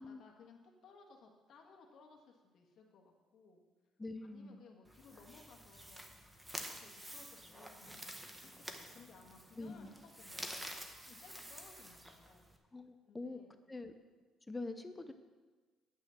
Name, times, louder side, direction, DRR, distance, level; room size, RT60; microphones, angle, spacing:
voice 1, 0.0-3.6 4.2-6.1 6.5-8.0 8.4-12.5 13.1-13.5, left 4 dB, 60° left, 1 dB, 1.6 m, -61 dB
voice 2, 4.0-4.6 9.6-9.9 12.7-13.4 13.7-13.9 14.5-15.1, left 2 dB, 15° left, 8 dB, 0.6 m, -44 dB
sound 1, 4.8-12.6, equal, 10° right, 1.0 m, -49 dB
10.0 x 6.3 x 6.4 m, 1.3 s
cardioid pair, 115°, 0 cm